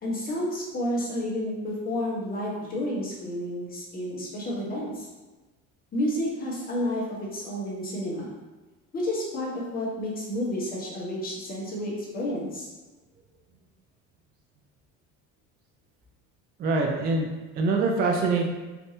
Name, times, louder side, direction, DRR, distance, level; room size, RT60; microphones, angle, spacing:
voice 1, 0.0-5.1 5.9-8.3 8.9-12.7, left 1 dB, 25° left, -4 dB, 1.0 m, -30 dB
voice 2, 16.6-18.5, right 3 dB, 30° right, 0 dB, 0.4 m, -24 dB
3.3 x 2.6 x 2.7 m, 1.2 s
cardioid pair, 125°, 32 cm